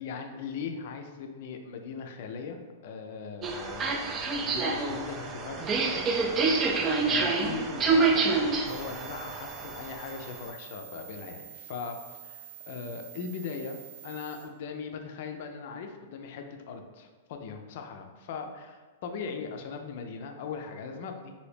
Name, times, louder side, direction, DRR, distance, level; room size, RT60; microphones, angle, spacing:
voice 1, 0.0-6.6 7.0-13.8 14.0-21.3, left 5 dB, 60° left, 5 dB, 0.4 m, -39 dB
sound 1, 3.4-10.2, right 4 dB, 30° right, 0.3 m, -27 dB
sound 2, 8.6-14.5, right 11 dB, 80° right, 0.7 m, -47 dB
2.8 x 2.6 x 3.3 m, 1.4 s
hypercardioid pair, 115°, 0 cm